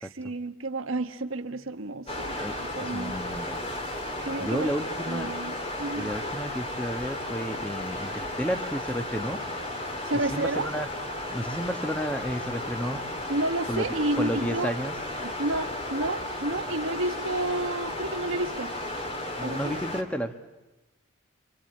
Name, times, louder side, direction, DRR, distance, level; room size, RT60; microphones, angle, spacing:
voice 1, 0.0-3.1 4.2-4.7 5.1-6.1 10.0-10.7 13.3-14.7 15.2-18.7 19.4-19.8, right 2 dB, 80° right, 7 dB, 1.3 m, -31 dB
sound 1, 2.1-20.0, left 1 dB, 30° left, 2.1 m, -34 dB
voice 2, 2.8-3.6 4.4-5.3 6.0-9.4 10.3-10.9 11.3-13.0 13.7-13.8 14.2-15.0 19.4-20.3, equal, 5° left, 7 dB, 1.2 m, -31 dB
26.0 x 25.5 x 8.9 m, 1.1 s
head